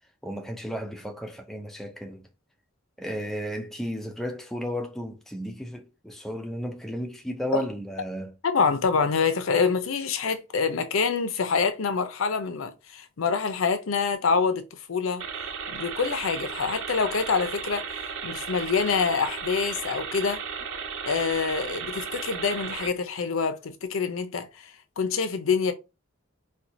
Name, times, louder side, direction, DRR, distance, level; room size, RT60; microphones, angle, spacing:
voice 1, 0.2-2.3 3.0-8.3, equal, ahead, 0.4 m, -33 dB
voice 2, 8.4-15.2 15.7-20.4 21.1-25.7, left 5 dB, 80° left, 0.5 m, -26 dB
sound 1, 15.2-22.9, right 6 dB, 75° right, 0.6 m, -35 dB
4.2 x 2.3 x 2.6 m
head